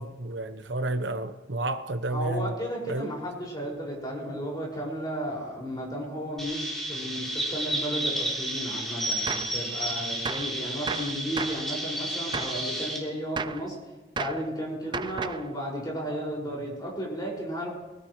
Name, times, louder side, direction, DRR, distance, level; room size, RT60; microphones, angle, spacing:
voice 1, 0.0-2.5 2.9-3.1, right 2 dB, 70° right, 1.0 m, -31 dB
voice 2, 2.1-13.8 14.2-17.7, equal, 20° left, 5.7 m, -34 dB
Chirp tweet, 6.4-13.0, right 1 dB, ahead, 3.4 m, -31 dB
Gunshot gunfire, 9.3-9.6 10.3-10.6 10.9-11.7 12.3-12.6 13.4-13.7 14.2-14.5 14.9-15.5, right 5 dB, 25° right, 0.4 m, -33 dB
23.5 x 16.5 x 3.2 m
head